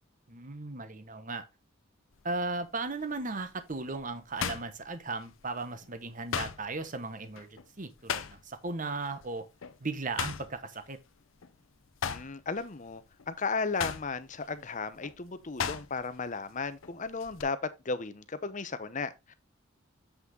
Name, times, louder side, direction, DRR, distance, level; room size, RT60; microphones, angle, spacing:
voice 1, 0.3-1.4 2.2-9.4 9.8-11.0, right 3 dB, 40° right, 1.1 m, -36 dB
sound 1, 2.1-2.5 3.0-5.5 5.8-8.7 9.0-9.3 9.6-11.6 11.9-16.2 16.5-17.4, left 7 dB, 80° left, 0.7 m, -37 dB
voice 2, 12.0-17.6 17.8-19.3, left 4 dB, 40° left, 0.8 m, -35 dB
7.6 x 6.0 x 3.8 m
head